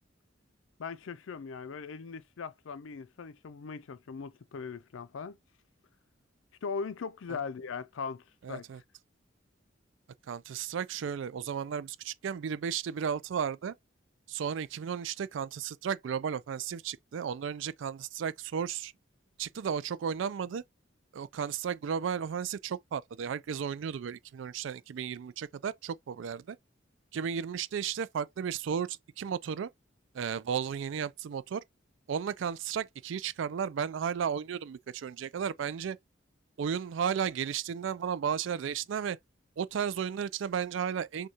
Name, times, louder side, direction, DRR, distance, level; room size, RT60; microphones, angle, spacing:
voice 1, 0.8-5.4 6.6-8.7, left 5 dB, 80° left, 0.4 m, -39 dB
voice 2, 8.4-8.8 10.3-13.8 14.3-18.9 19.4-20.6 21.1-26.6 27.1-29.7 30.1-31.6 32.1-36.0 36.6-39.2 39.6-41.3, right 7 dB, 70° right, 0.3 m, -34 dB
6.3 x 2.3 x 2.8 m
head